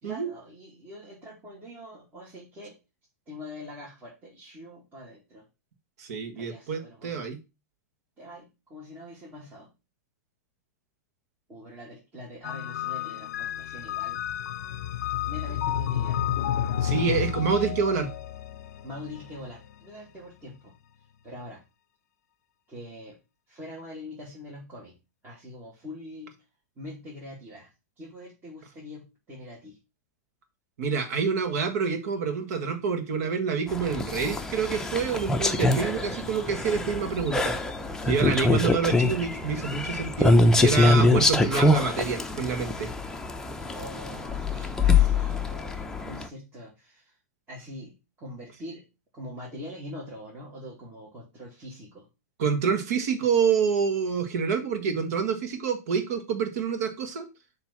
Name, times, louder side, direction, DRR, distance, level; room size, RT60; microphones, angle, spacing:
voice 1, 0.0-2.8 3.3-5.4 6.3-7.2 8.2-9.7 11.5-14.2 15.3-16.2 16.9-18.1 18.8-20.7 21.2-21.6 22.7-23.2 23.5-24.9 25.2-26.3 26.8-27.7 28.0-29.8 43.7-47.1 47.5-48.8 49.1-52.1, left 1 dB, 25° right, -5 dB, 2.4 m, -43 dB
voice 2, 6.0-7.4 16.8-18.1 30.8-37.5 38.0-42.9 52.4-57.3, right 6 dB, 65° right, 8 dB, 1.7 m, -27 dB
sound 1, 12.4-19.7, left 10 dB, 75° left, 0.5 m, -31 dB
sound 2, 33.7-46.3, left 2 dB, 5° left, 0.7 m, -24 dB
7.2 x 3.3 x 5.8 m, 0.27 s
hypercardioid pair, 120°, 9 cm